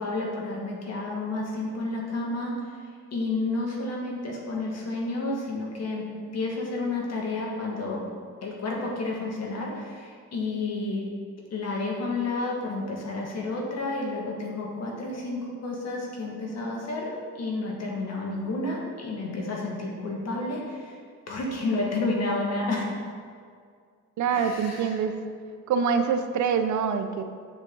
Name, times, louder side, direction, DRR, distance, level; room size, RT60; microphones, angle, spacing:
voice 1, 0.0-2.5 3.1-6.0 6.3-8.0 8.4-11.1 11.5-21.0 21.3-22.9 24.3-25.0, left 2 dB, 55° left, -2 dB, 2.0 m, -30 dB
voice 2, 24.2-25.1 25.7-27.2, right 6 dB, 70° right, 8 dB, 0.7 m, -25 dB
7.2 x 7.1 x 3.9 m, 2.1 s
cardioid pair, 90°, 30 cm